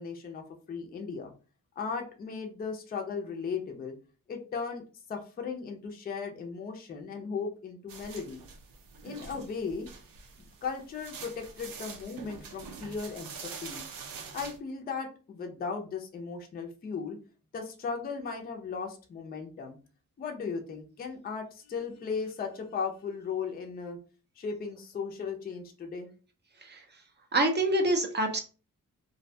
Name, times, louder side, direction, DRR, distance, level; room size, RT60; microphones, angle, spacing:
voice 1, 0.0-1.3 1.8-3.9 4.3-8.4 9.0-9.9 10.4-13.3 13.6-13.9 14.3-17.2 17.5-19.8 20.2-24.0 24.4-26.1, left 5 dB, 30° left, 3 dB, 0.4 m, -36 dB
sound 1, 7.9-14.6, right 5 dB, 85° right, 0.6 m, -45 dB
voice 2, 27.3-28.4, right 1 dB, 35° right, 4 dB, 0.4 m, -26 dB
2.5 x 2.1 x 2.6 m, 0.36 s
wide cardioid pair, 155°, 33 cm